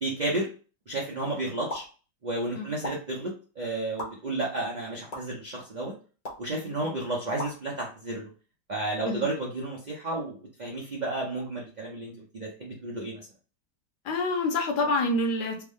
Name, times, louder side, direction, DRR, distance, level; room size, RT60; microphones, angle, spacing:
voice 1, 0.0-0.5 0.9-1.8 2.2-5.9 6.4-8.3 8.7-13.3, right 2 dB, 65° right, -3 dB, 0.4 m, -32 dB
sound 1, 1.7-1.9 2.8-2.9 4.0-4.1 5.1-5.2 6.2-6.4 7.4-7.5, left 1 dB, 35° left, 0.7 m, -35 dB
voice 2, 14.0-15.6, left 2 dB, 75° left, 3 dB, 1.4 m, -27 dB
3.4 x 2.1 x 3.5 m, 0.37 s
omnidirectional pair, 1.8 m